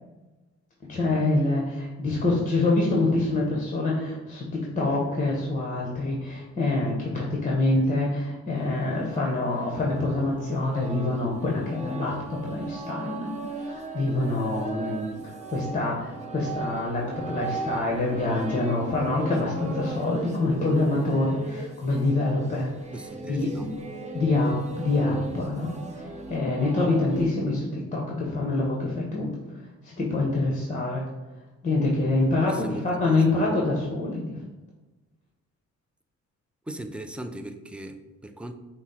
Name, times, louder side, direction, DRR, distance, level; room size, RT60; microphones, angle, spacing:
voice 1, 0.9-13.3 13.6-22.7 23.2-23.7 24.1-29.3 29.8-31.1 31.6-34.4, left 2 dB, 25° left, -3 dB, 1.0 m, -26 dB
sound 1, 8.5-27.3, right 3 dB, 25° right, 0.7 m, -37 dB
voice 2, 22.9-23.7 32.5-33.4 36.7-38.5, right 1 dB, 5° right, 7 dB, 0.3 m, -38 dB
5.9 x 2.0 x 4.2 m, 1.2 s
cardioid pair, 90°, 30 cm